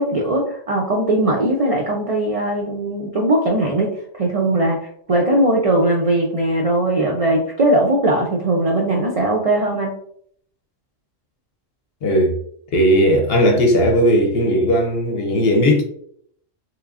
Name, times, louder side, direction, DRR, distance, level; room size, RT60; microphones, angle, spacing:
voice 1, 0.0-9.9, right 1 dB, 70° right, 0.3 m, -19 dB
voice 2, 12.0-12.4 12.7-15.8, equal, 60° left, 0.7 m, -16 dB
3.6 x 3.1 x 2.4 m
omnidirectional pair, 1.4 m